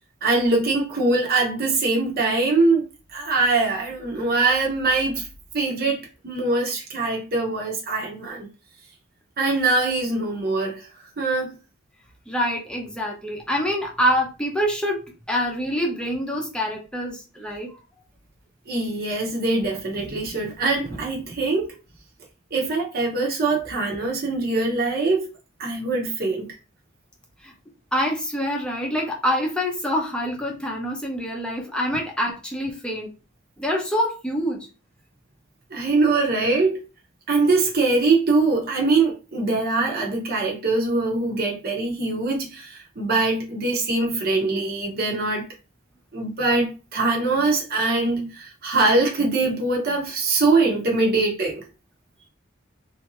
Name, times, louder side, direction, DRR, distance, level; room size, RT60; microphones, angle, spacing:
voice 1, 0.2-2.8 3.1-5.3 5.5-8.5 9.4-10.9 11.2-11.6 18.7-21.7 22.5-25.3 25.6-26.5 35.7-36.8 37.3-45.4 46.1-51.6, right 3 dB, 45° right, 1.0 m, -23 dB
voice 2, 12.3-15.0 15.3-17.7 27.4-27.5 27.9-33.1 33.6-34.6, equal, 5° left, 0.8 m, -25 dB
3.4 x 2.7 x 3.0 m
head